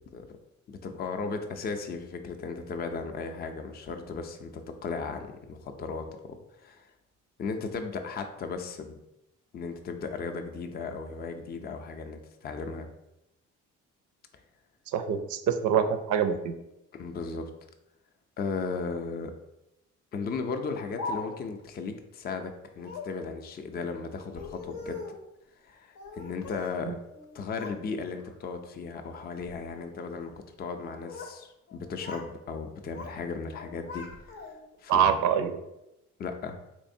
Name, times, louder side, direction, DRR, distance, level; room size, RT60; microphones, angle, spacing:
voice 1, 0.7-6.9 7.4-9.0 9.5-12.9 16.9-17.5 18.4-19.3 20.1-25.0 25.6-27.0 27.3-34.1 34.8-35.2 36.2-36.6, left 4 dB, 35° left, 6 dB, 0.4 m, -36 dB
voice 2, 14.9-16.5 34.9-35.6, right 8 dB, 75° right, 9 dB, 0.4 m, -25 dB
Speech, 20.5-21.6 22.8-23.2 24.2-25.2 25.9-26.7 27.1-27.8 28.2-28.6 29.2-29.6 30.7-31.4 31.7-32.3 32.6-33.2 33.5-34.8, left 3 dB, 70° left, 0.7 m, -41 dB
3.5 x 3.1 x 2.6 m, 0.88 s
cardioid pair, 90°, 30 cm